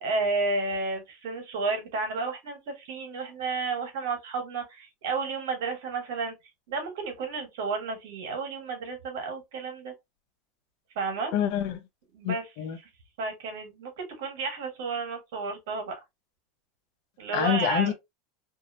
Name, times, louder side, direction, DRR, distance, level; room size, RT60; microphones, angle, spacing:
voice 1, 0.0-6.3 6.7-9.9 10.9-11.3 12.1-12.4 13.2-15.9 17.2-17.9, right 3 dB, 80° right, 1.3 m, -31 dB
voice 2, 11.3-11.8 12.2-12.8 17.3-17.9, left 10 dB, 60° left, 0.6 m, -27 dB
2.7 x 2.0 x 2.7 m
supercardioid pair, 135°, 0 cm